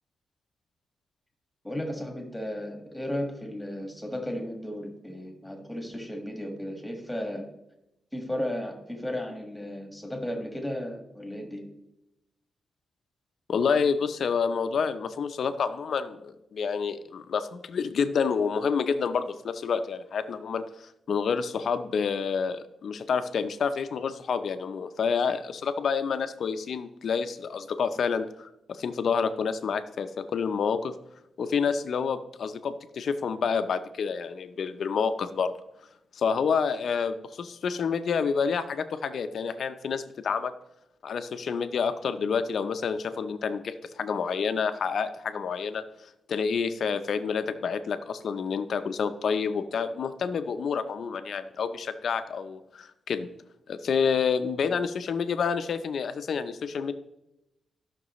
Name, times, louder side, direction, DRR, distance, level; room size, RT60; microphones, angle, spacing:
voice 1, 1.6-7.5 8.1-11.7, left 1 dB, 5° left, 2 dB, 1.8 m, -34 dB
voice 2, 13.5-30.9 31.4-35.5 36.1-40.5 41.0-45.8 46.3-53.3 53.7-56.9, left 6 dB, 65° left, 10 dB, 0.7 m, -28 dB
15.0 x 6.0 x 3.1 m, 0.90 s
cardioid pair, 115°, 0 cm